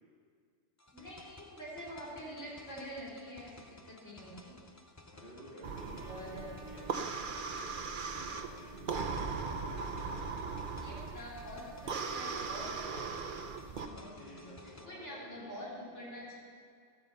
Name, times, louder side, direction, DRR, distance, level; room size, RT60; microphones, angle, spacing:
sound 1, 0.8-14.9, left 2 dB, 20° left, 0.5 m, -56 dB
voice 1, 0.9-4.5 6.0-6.5 10.8-12.9 13.7-16.4, equal, 65° left, -7 dB, 4.2 m, -46 dB
voice 2, 5.1-9.5 13.9-16.2, equal, 45° left, -7 dB, 2.3 m, -53 dB
sound 2, 5.6-13.9, right 5 dB, 45° right, 0.8 m, -39 dB
Trumpet, 5.7-12.8, right 2 dB, 85° left, 4.1 m, -57 dB
12.5 x 9.7 x 7.0 m, 2.2 s
omnidirectional pair, 1.3 m